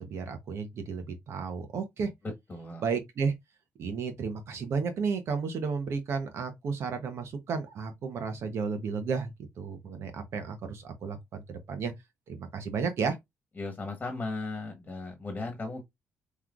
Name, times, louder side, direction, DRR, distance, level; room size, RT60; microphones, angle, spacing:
voice 1, 0.0-2.1 2.8-3.3 3.8-9.3 9.6-11.9 12.3-13.2, right 5 dB, 65° right, 1.0 m, -33 dB
voice 2, 2.5-2.8 13.6-15.8, left 3 dB, 25° left, 1.4 m, -36 dB
5.6 x 3.2 x 2.5 m
cardioid pair, 105°, 5 cm